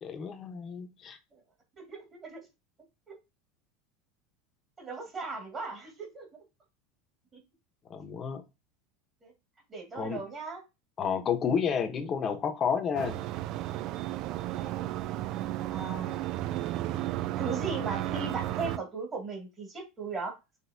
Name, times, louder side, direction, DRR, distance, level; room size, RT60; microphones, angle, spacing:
voice 1, 0.0-1.2 7.9-8.4 9.9-10.2 11.0-13.2, left 7 dB, 30° left, 0.9 m, -30 dB
voice 2, 1.8-2.5 3.1-3.2 4.8-6.3 9.2-9.3 9.7-10.6 14.3-14.9 15.7-16.2 17.3-20.3, right 4 dB, 25° right, 2.0 m, -38 dB
sound 1, 12.9-18.8, right 14 dB, 50° right, 0.3 m, -33 dB
6.1 x 3.0 x 2.7 m
supercardioid pair, 130°, 0 cm